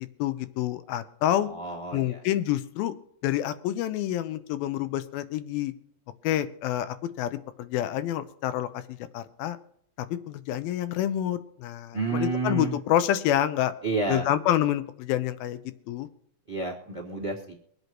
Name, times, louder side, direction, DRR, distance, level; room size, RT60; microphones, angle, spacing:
voice 1, 0.2-1.5 1.9-2.9 3.2-5.7 6.2-9.6 10.3-13.7 14.1-15.6 15.9-16.1, left 12 dB, 85° left, 11 dB, 2.6 m, -28 dB
voice 2, 1.3-2.2 11.9-12.8 13.8-14.3 16.5-17.5, right 3 dB, 10° right, 0 dB, 1.7 m, -30 dB
24.0 x 8.1 x 3.0 m, 0.70 s
omnidirectional pair, 4.1 m